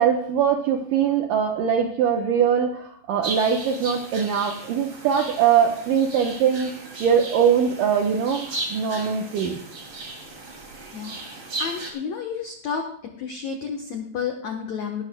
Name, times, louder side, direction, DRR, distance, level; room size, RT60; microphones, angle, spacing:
voice 1, 0.0-6.7 7.0-9.6, right 7 dB, 80° right, 3 dB, 2.0 m, -22 dB
sound 1, 3.2-11.9, right 2 dB, 35° right, 2.7 m, -36 dB
voice 2, 10.9-12.9 13.2-15.0, left 6 dB, 80° left, 3 dB, 1.5 m, -31 dB
19.0 x 12.0 x 2.2 m, 0.68 s
omnidirectional pair, 5.0 m